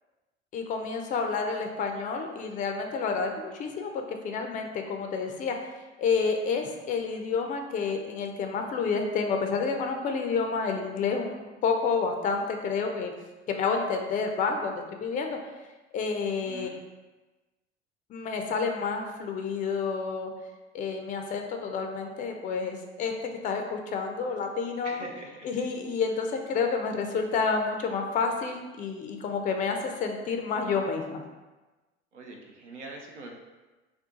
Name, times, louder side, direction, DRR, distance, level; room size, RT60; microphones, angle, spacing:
voice 1, 0.5-5.6 6.0-13.1 13.5-15.4 15.9-16.7 18.1-20.3 20.7-23.1 23.4-25.0 25.4-31.2, left 5 dB, 25° left, 4 dB, 0.4 m, -29 dB
voice 2, 16.5-16.8 24.8-25.5 32.1-33.3, right 2 dB, 90° right, 1 dB, 0.5 m, -43 dB
2.6 x 2.3 x 3.7 m, 1.2 s
figure-of-eight pair, 70°, 35 cm